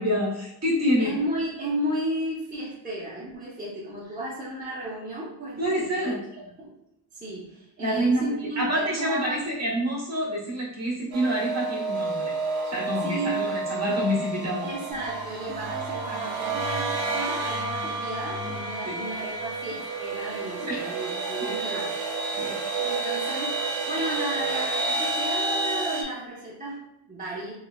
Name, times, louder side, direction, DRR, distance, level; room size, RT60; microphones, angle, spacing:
voice 1, 0.0-1.1 5.6-6.2 7.8-12.3 12.6-14.7 18.8-19.0 20.6-20.8 22.4-22.6, equal, 35° right, -4 dB, 1.0 m, -27 dB
voice 2, 1.0-6.8 7.1-9.5 13.0-13.5 14.6-22.0 22.2-27.5, right 1 dB, 20° right, -8 dB, 0.5 m, -34 dB
sound 1, 11.1-26.0, right 3 dB, 75° right, 0.7 m, -30 dB
sound 2, 14.9-20.4, left 1 dB, 50° left, 1.2 m, -41 dB
3.1 x 3.0 x 2.2 m, 0.88 s
wide cardioid pair, 175°, 45 cm